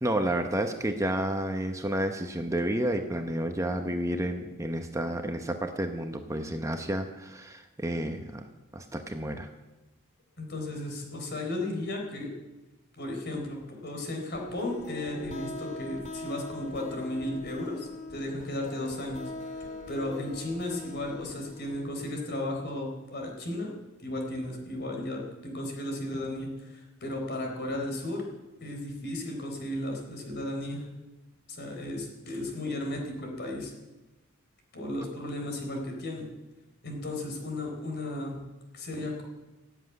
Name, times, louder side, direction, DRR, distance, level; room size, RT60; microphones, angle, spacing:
voice 1, 0.0-8.5 8.7-9.5, right 1 dB, 15° right, 6 dB, 0.9 m, -30 dB
voice 2, 10.4-12.3 13.0-19.2 19.6-23.7 24.0-28.2 28.6-30.9 31.5-33.7 34.7-36.3 36.8-38.4 38.7-39.2, left 1 dB, 55° left, 2 dB, 4.0 m, -35 dB
sound 1, 14.3-21.9, left 2 dB, 35° left, 1.8 m, -41 dB
17.0 x 8.1 x 9.5 m, 1.1 s
head